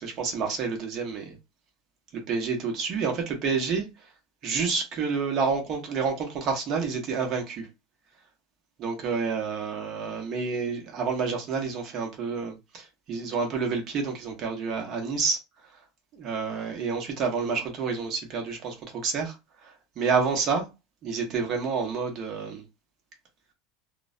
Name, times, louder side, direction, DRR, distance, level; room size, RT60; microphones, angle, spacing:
voice 1, 0.0-1.4 2.1-3.9 4.4-7.7 8.8-15.4 16.1-19.4 19.6-20.7 21.0-22.6, right 5 dB, 45° right, 0.9 m, -29 dB
2.4 x 2.1 x 2.4 m
supercardioid pair, 110°, 0 cm